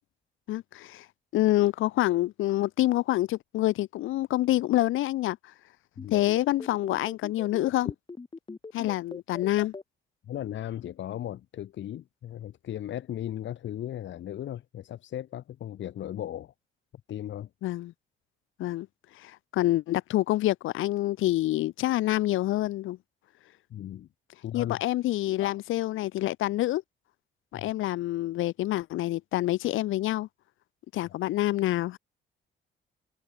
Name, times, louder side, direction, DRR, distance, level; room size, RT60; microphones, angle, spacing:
voice 1, 0.5-1.1 1.3-5.4 6.1-7.9 8.7-9.7 17.6-17.9 18.6-18.9 19.2-23.0 24.5-26.8 27.5-30.3 30.9-32.0, left 15 dB, 85° left, 2.1 m, -27 dB
voice 2, 6.0-6.3 10.3-16.5 17.1-17.5 23.7-24.1 24.4-24.8 25.4-25.6 27.5-27.6, left 11 dB, 70° left, 1.8 m, -36 dB
sound 1, 6.0-9.8, left 3 dB, 25° left, 2.3 m, -41 dB
cardioid pair, 90°, 20 cm